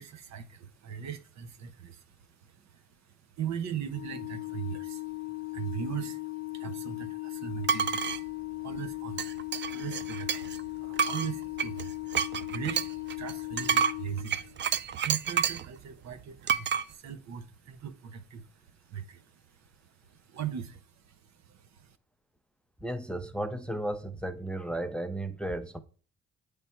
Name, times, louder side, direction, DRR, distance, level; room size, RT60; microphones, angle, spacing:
voice 1, 0.0-22.0, right 8 dB, 65° right, 0.8 m, -40 dB
Organ, 3.9-14.7, left 23 dB, 85° left, 0.6 m, -38 dB
sound 1, 7.6-8.2 9.2-10.6 11.0-15.7 16.5-16.8, right 7 dB, 40° right, 0.4 m, -29 dB
voice 2, 22.8-25.8, right 1 dB, 5° left, 0.6 m, -34 dB
8.3 x 3.4 x 4.3 m
cardioid pair, 90°, 30 cm